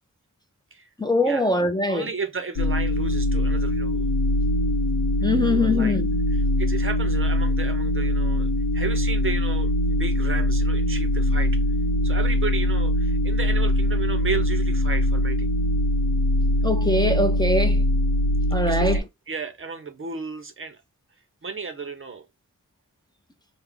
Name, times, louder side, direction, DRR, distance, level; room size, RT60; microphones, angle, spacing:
voice 1, 1.0-2.1 5.2-6.1 16.6-17.8 18.5-19.0, left 2 dB, 15° left, 0.5 m, -22 dB
voice 2, 1.9-4.2 5.2-6.0 6.3-11.6 12.0-15.5 18.7-20.8 21.4-22.3, right 4 dB, 40° right, 0.6 m, -33 dB
sound 1, 2.6-19.0, left 1 dB, 75° left, 0.7 m, -22 dB
3.6 x 2.1 x 3.4 m
wide cardioid pair, 120°, 33 cm